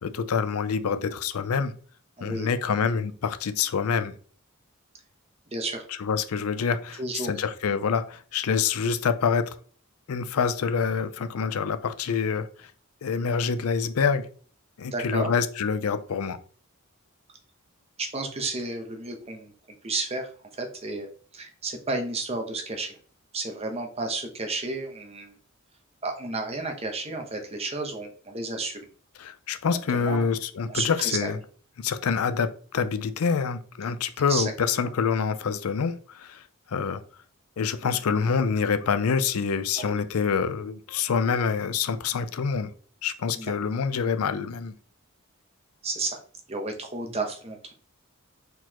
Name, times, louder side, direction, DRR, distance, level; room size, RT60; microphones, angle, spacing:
voice 1, 0.0-1.7 2.2-4.1 6.0-9.6 10.1-12.7 13.0-14.3 14.8-16.4 29.2-31.4 31.8-36.4 36.7-37.0 37.6-42.7 43.0-44.7, left 6 dB, 80° left, 11 dB, 0.5 m, -26 dB
voice 2, 2.2-2.5 5.5-5.8 7.0-7.3 14.8-15.3 18.0-19.5 19.8-21.1 21.3-23.0 23.3-25.4 26.0-28.9 29.9-30.2 30.7-31.3 34.3-34.5 39.8-40.0 43.3-43.5 45.8-46.2 46.5-47.7, right 3 dB, 30° right, 4 dB, 0.8 m, -32 dB
4.6 x 4.0 x 2.9 m, 0.44 s
head